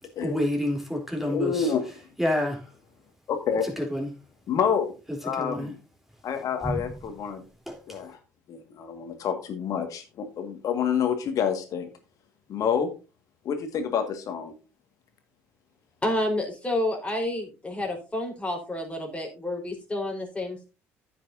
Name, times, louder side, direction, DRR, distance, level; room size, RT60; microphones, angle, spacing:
voice 1, 0.2-1.7 2.2-2.7 3.8-4.1 5.3-5.7 6.6-6.8 7.7-7.8, left 1 dB, 5° right, 3.6 m, -28 dB
voice 2, 1.3-2.1 3.3-3.7 4.5-4.9 5.2-5.8 6.2-7.4 7.9-8.2 8.5-11.9 12.5-12.9 13.4-14.5, left 7 dB, 50° left, 1.9 m, -28 dB
voice 3, 16.0-20.6, left 1 dB, 15° left, 4.3 m, -29 dB
14.5 x 6.1 x 2.7 m
figure-of-eight pair, 55°, 7 cm